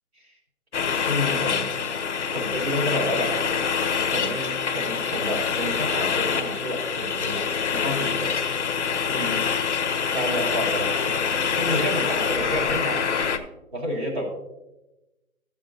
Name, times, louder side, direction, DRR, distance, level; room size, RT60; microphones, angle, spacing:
sound 1, 0.7-13.4, left 6 dB, 55° left, 0.7 m, -25 dB
voice 1, 1.0-1.7 2.3-3.4 4.1-8.4 9.1-9.4 10.1-11.2 11.5-13.0 13.7-14.3, equal, 50° right, -2 dB, 3.0 m, -30 dB
12.5 x 7.2 x 2.7 m, 0.99 s
hypercardioid pair, 170°, 43 cm